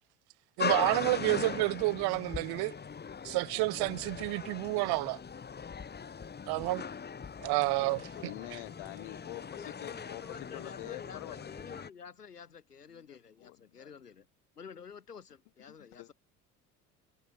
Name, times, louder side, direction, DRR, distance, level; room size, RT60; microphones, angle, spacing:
sound 1, 0.6-11.9, left 6 dB, 20° left, 1.5 m, -40 dB
voice 1, 0.6-2.7 3.2-5.2 6.5-6.8 7.4-8.6, right 24 dB, 55° right, 1.9 m, -30 dB
voice 2, 8.2-10.2 10.5-11.5 12.9-14.0 15.7-16.1, left 39 dB, 60° left, 2.4 m, -46 dB
voice 3, 9.6-14.3 14.6-16.1, left 6 dB, 85° left, 4.3 m, -49 dB
figure-of-eight pair, 60°, 46 cm